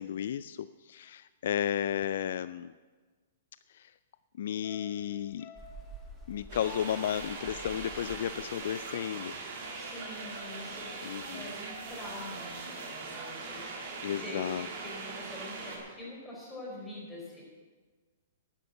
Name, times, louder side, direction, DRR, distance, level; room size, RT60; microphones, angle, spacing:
voice 1, 0.0-2.7 3.7-3.9 4.4-5.5 6.3-9.4 11.0-11.6 14.0-14.7, left 10 dB, 65° left, 15 dB, 0.3 m, -33 dB
sound 1, 4.6-9.0 9.3-9.4, left 3 dB, 35° left, 1.3 m, -53 dB
Rain, 5.6-12.6, right 3 dB, 10° right, 1.5 m, -53 dB
sound 2, 6.5-15.8, right 3 dB, 45° right, 2.8 m, -41 dB
voice 2, 9.8-14.4 14.8-17.4, left 1 dB, 10° left, -4 dB, 4.5 m, -45 dB
11.0 x 9.9 x 6.6 m, 1.4 s
hypercardioid pair, 150°, 0 cm